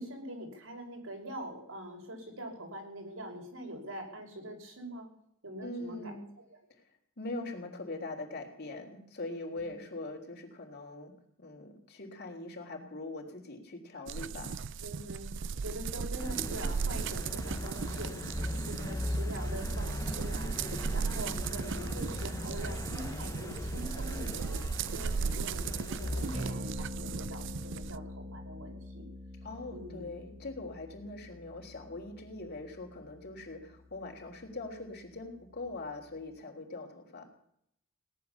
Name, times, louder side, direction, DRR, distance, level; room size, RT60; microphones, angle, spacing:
voice 1, 0.0-5.1 5.4-6.4 9.5-9.8 14.3-14.5 14.8-29.1 29.7-30.1, right 1 dB, 80° right, 1 dB, 5.5 m, -44 dB
voice 2, 5.6-6.2 7.2-11.1 11.4-14.6 29.4-37.3, left 2 dB, 50° left, 3 dB, 3.6 m, -42 dB
sound 1, 14.1-28.0, right 5 dB, 60° right, 0.5 m, -37 dB
sound 2, 16.2-26.5, left 1 dB, 15° left, 1.0 m, -38 dB
sound 3, 26.3-36.4, equal, 30° right, 1.5 m, -46 dB
18.0 x 11.0 x 7.1 m, 0.72 s
head